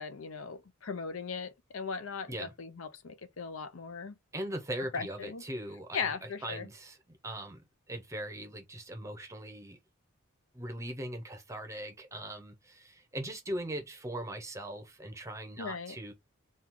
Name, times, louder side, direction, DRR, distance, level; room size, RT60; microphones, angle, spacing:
voice 1, 0.0-4.1 4.9-5.4 5.9-6.7 15.6-16.0, left 5 dB, 70° left, 0.6 m, -38 dB
voice 2, 4.3-7.6 7.9-9.8 10.5-16.1, right 1 dB, 15° right, 0.7 m, -40 dB
4.4 x 2.3 x 3.6 m
head